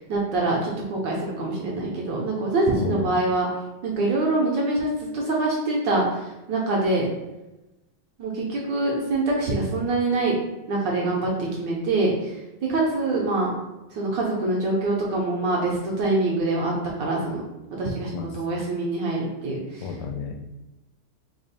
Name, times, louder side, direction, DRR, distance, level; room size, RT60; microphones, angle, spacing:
voice 1, 0.0-3.5 3.8-7.1 8.2-10.3 10.7-12.4 12.7-13.5 13.9-16.7 17.0-17.4 17.8-19.8, right 2 dB, 70° right, -3 dB, 1.1 m, -25 dB
voice 2, 2.8-3.1 18.1-18.4 19.8-20.5, left 6 dB, 80° left, 4 dB, 1.4 m, -32 dB
3.4 x 2.3 x 3.9 m, 1.0 s
omnidirectional pair, 2.4 m